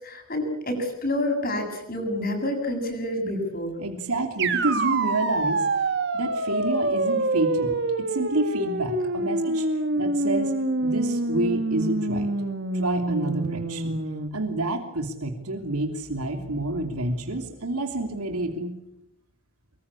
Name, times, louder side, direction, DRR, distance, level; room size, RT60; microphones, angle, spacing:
voice 1, 0.0-3.8, left 1 dB, 40° left, 4 dB, 7.6 m, -28 dB
voice 2, 3.8-5.7 6.1-9.7 9.9-10.5 10.8-12.3 12.7-14.0 14.3-18.7, right 2 dB, 85° right, 5 dB, 3.0 m, -28 dB
sound 1, 4.4-14.3, right 2 dB, 50° right, 2.1 m, -26 dB
25.0 x 23.5 x 8.5 m, 0.83 s
head